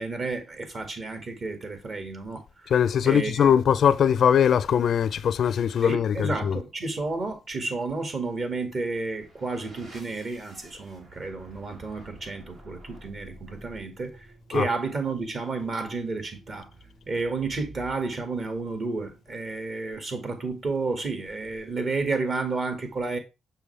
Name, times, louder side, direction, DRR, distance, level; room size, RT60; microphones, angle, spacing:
voice 1, 0.0-2.7 3.0-3.5 5.8-16.7 17.1-23.2, right 3 dB, 45° right, 2.0 m, -31 dB
voice 2, 2.7-6.6 14.5-14.7, left 8 dB, 60° left, 0.4 m, -21 dB
sound 1, 8.8-19.5, right 2 dB, 65° right, 4.0 m, -51 dB
6.9 x 5.7 x 3.3 m
cardioid pair, 90°, 0 cm